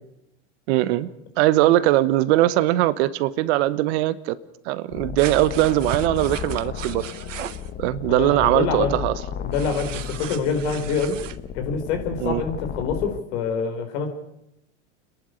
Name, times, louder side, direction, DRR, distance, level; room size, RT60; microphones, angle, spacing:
voice 1, 0.7-1.1 1.4-4.4 4.6-7.1 7.8-9.1 12.2-12.4, right 15 dB, 60° right, 15 dB, 1.2 m, -20 dB
sound 1, 4.9-13.2, left 8 dB, 30° left, 0.9 m, -34 dB
sound 2, 5.2-7.7 9.5-11.4, right 10 dB, 90° right, 1.1 m, -36 dB
voice 2, 8.1-8.9 9.4-11.2 11.5-14.1, left 5 dB, 65° left, 5 dB, 4.8 m, -26 dB
30.0 x 11.0 x 8.2 m, 0.81 s
hypercardioid pair, 110°, 37 cm